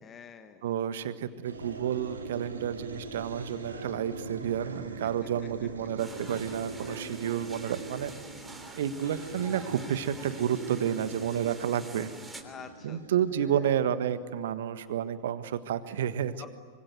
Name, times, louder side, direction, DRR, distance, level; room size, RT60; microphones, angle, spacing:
voice 1, 0.0-0.6 12.4-13.0 13.4-13.8 15.9-16.5, left 7 dB, 25° left, 8 dB, 1.4 m, -48 dB
voice 2, 0.6-8.1 8.8-12.1 12.8-16.5, right 9 dB, 60° right, 12 dB, 1.5 m, -30 dB
sound 1, 1.4-14.4, right 3 dB, 75° right, 3.4 m, -42 dB
sound 2, 6.0-12.4, right 2 dB, 5° right, 3.2 m, -47 dB
25.0 x 25.0 x 9.4 m, 1.5 s
figure-of-eight pair, 90°, 0 cm